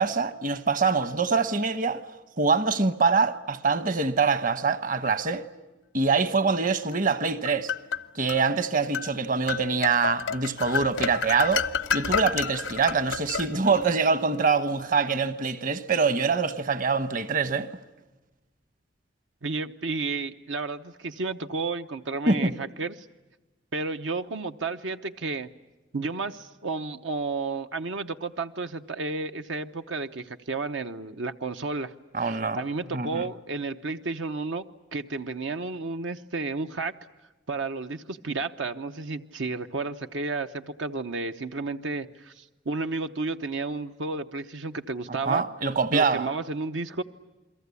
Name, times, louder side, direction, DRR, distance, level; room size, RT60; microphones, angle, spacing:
voice 1, 0.0-2.0 2.4-5.4 5.9-7.7 8.1-11.7 11.9-17.7 22.3-22.5 32.1-32.6 32.9-33.2 45.3-46.3, right 4 dB, 45° right, 1.1 m, -24 dB
sound 1, 7.1-8.4 8.9-9.1 9.5-13.9, left 6 dB, 85° left, 0.8 m, -30 dB
voice 2, 19.4-22.9 23.7-25.5 25.9-31.9 32.2-34.6 34.9-36.9 37.5-45.4 45.9-47.0, right 3 dB, 80° right, 0.9 m, -32 dB
29.0 x 22.5 x 8.4 m
head